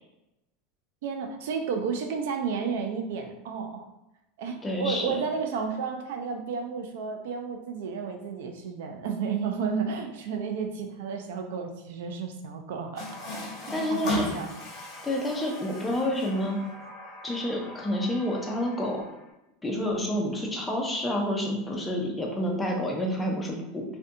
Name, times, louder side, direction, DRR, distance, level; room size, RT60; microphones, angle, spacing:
voice 1, 1.0-3.9 4.4-13.1 13.6-14.5, right 5 dB, 80° right, 4 dB, 0.3 m, -32 dB
voice 2, 4.6-5.2 13.7-14.4 15.0-16.6 17.2-19.0 19.6-23.8, left 1 dB, 10° left, -1 dB, 0.5 m, -29 dB
Water tap faucet, 13.0-19.3, left 1 dB, 45° left, 0.9 m, -37 dB
2.5 x 2.2 x 2.6 m, 0.93 s
supercardioid pair, 130°, 0 cm